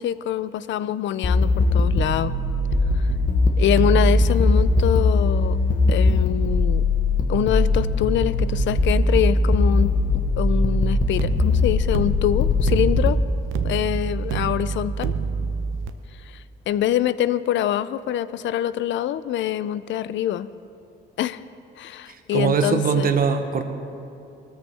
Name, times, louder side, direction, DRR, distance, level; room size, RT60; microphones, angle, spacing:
voice 1, 0.0-2.3 3.0-3.1 3.6-5.6 5.9-6.8 7.3-13.2 13.6-15.1 16.3-20.5 21.2-21.4 21.8-23.1, left 11 dB, 70° left, 15 dB, 0.5 m, -25 dB
sound 1, 1.2-13.2, left 2 dB, 40° left, 1.1 m, -20 dB
sound 2, 3.7-8.8 11.2-15.9, right 5 dB, 85° right, 0.7 m, -29 dB
voice 2, 22.1-23.6, right 6 dB, 45° right, 6 dB, 0.9 m, -22 dB
20.0 x 13.5 x 3.4 m, 2.7 s
cardioid pair, 90°, 20 cm